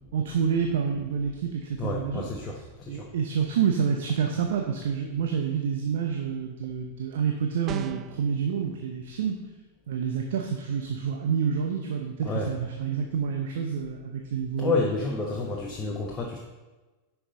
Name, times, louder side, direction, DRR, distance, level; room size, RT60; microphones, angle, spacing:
voice 1, 0.1-2.2 2.9-9.4 9.9-14.7, right 7 dB, 55° right, 4 dB, 0.8 m, -28 dB
voice 2, 1.8-3.1 12.2-12.5 14.6-16.4, left 3 dB, 20° left, -2 dB, 1.0 m, -30 dB
sound 1, 7.7-8.2, right 10 dB, 30° right, 0.4 m, -35 dB
10.0 x 5.7 x 4.0 m, 1.2 s
figure-of-eight pair, 90°, 0 cm